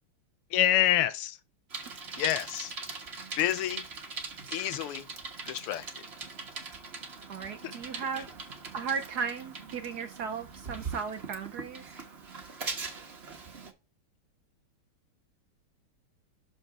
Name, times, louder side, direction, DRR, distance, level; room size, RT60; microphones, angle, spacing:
voice 1, 0.5-1.4 2.1-2.7 3.4-3.8 4.5-5.1 5.5-6.0 8.1-8.2, left 12 dB, 85° left, 1.6 m, -28 dB
Bicycle, 1.7-13.7, right 4 dB, 35° right, 1.2 m, -41 dB
voice 2, 7.3-8.3 8.7-11.8, right 6 dB, 75° right, 0.9 m, -35 dB
6.6 x 4.5 x 4.7 m
omnidirectional pair, 2.4 m